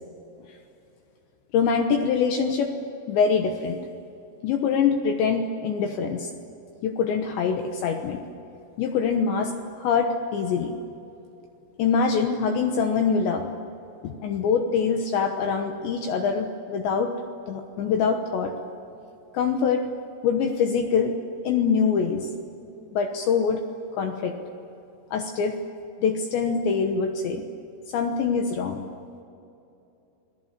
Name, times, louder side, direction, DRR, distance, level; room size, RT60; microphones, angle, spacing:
voice 1, 1.5-2.8 3.1-3.9 4.4-6.3 6.8-8.2 8.8-10.8 11.8-13.5 14.0-17.1 17.5-18.5 19.3-19.9 20.2-22.3 22.9-23.6 24.0-24.3 25.1-25.6 26.0-27.5 27.9-28.9, left 6 dB, 70° left, 4 dB, 3.1 m, -24 dB
28.5 x 21.0 x 7.4 m, 2.8 s
omnidirectional pair, 6.0 m